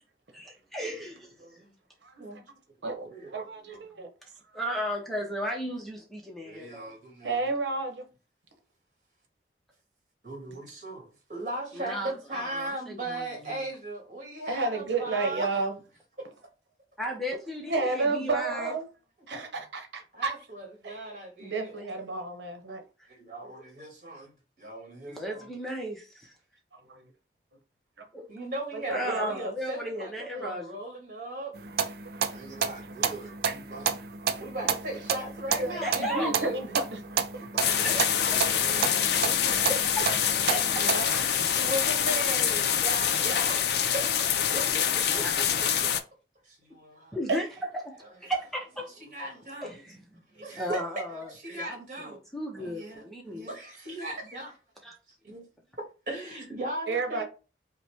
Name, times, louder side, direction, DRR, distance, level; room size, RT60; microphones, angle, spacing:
voice 1, 0.3-1.3 4.5-6.9 11.7-13.6 17.0-18.7 23.4-23.5 25.1-26.3 28.1-28.2 28.9-30.8 35.7-36.3 37.8-38.1 39.7-41.3 45.1-45.5 47.1-47.5 47.8-48.9 49.6-50.2 50.5-53.5 54.8-54.9, equal, ahead, 0.7 m, -35 dB
voice 2, 1.4-1.7 2.2-2.4 3.0-3.8 6.4-7.5 10.2-15.5 16.2-16.3 19.3-19.5 20.1-21.8 23.1-25.5 28.3-31.6 32.3-34.0 34.4-39.5 40.8-41.1 41.4-45.9 46.4-47.2 48.2-48.3 49.0-49.8 50.3-52.2 52.6-54.6 55.2-55.4 56.1-57.2, right 1 dB, 45° right, 1.8 m, -38 dB
voice 3, 2.0-2.4 2.8-4.1 7.2-8.1 11.9-12.0 14.5-15.7 17.6-18.9 19.3-20.3 20.8-21.0 21.4-22.8 26.9-27.1 28.7-29.3 35.6-37.0 47.3-47.4 52.6-52.7 56.9-57.2, right 3 dB, 90° right, 0.9 m, -31 dB
sound 1, 31.6-41.0, right 6 dB, 60° right, 0.5 m, -31 dB
sound 2, 37.6-46.0, left 8 dB, 70° left, 0.5 m, -25 dB
5.4 x 2.1 x 3.5 m
head